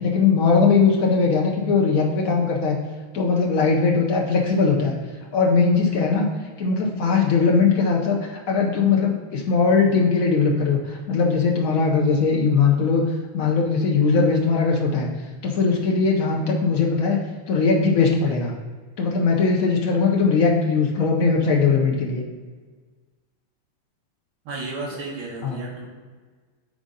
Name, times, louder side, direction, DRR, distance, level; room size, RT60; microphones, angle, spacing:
voice 1, 0.0-2.8 3.1-5.0 5.3-6.3 6.6-13.0 13.3-15.1 15.4-17.2 17.5-18.5 19.0-22.2 25.4-25.6, left 4 dB, 85° left, -1 dB, 0.7 m, -20 dB
voice 2, 24.5-25.9, right 3 dB, 70° right, -5 dB, 2.2 m, -33 dB
5.1 x 3.6 x 5.2 m, 1.5 s
omnidirectional pair, 2.4 m